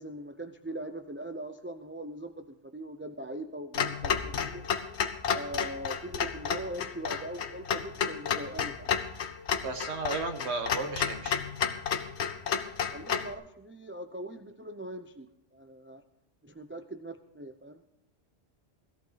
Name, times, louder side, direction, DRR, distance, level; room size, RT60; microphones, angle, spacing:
voice 1, 0.0-4.7 5.3-9.0 12.9-16.0 16.4-17.8, right 1 dB, 15° right, 7 dB, 0.5 m, -41 dB
Clock, 3.7-13.3, left 7 dB, 80° left, 1.2 m, -31 dB
voice 2, 9.6-11.4, right 3 dB, 80° right, 7 dB, 1.5 m, -34 dB
17.0 x 14.0 x 3.9 m, 0.77 s
omnidirectional pair, 1.1 m